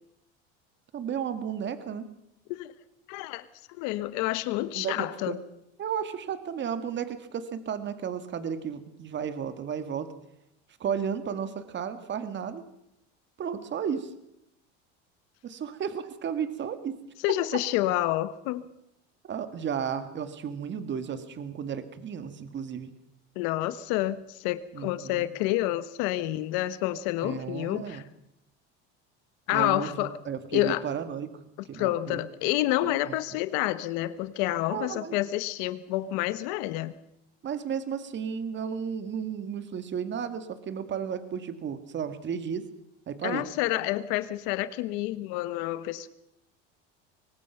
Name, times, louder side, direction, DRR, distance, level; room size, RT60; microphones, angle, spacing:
voice 1, 0.9-2.1 4.7-5.4 5.8-10.1 10.8-12.6 13.4-14.1 15.4-17.0 17.3-17.6 19.2-22.9 24.7-25.3 27.2-28.0 29.5-31.4 31.7-32.2 33.1-33.2 34.7-35.2 37.4-42.7 43.1-43.5, right 7 dB, 40° right, 2.0 m, -33 dB
voice 2, 3.1-5.4 17.2-18.7 23.3-28.0 29.5-30.2 30.5-30.8 31.7-36.9 43.2-46.1, left 15 dB, 75° left, 1.3 m, -29 dB
24.0 x 19.0 x 5.9 m
supercardioid pair, 110°, 30 cm